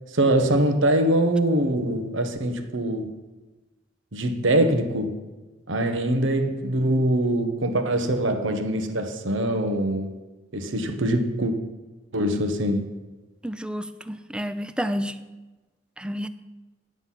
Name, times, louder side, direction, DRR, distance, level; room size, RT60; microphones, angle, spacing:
voice 1, 0.1-3.1 4.1-5.2 5.7-10.1 10.5-11.5 12.1-12.9, right 1 dB, 85° right, 1.1 m, -23 dB
voice 2, 13.4-15.2 16.0-16.3, equal, 5° right, 0.4 m, -30 dB
9.5 x 7.8 x 5.7 m
head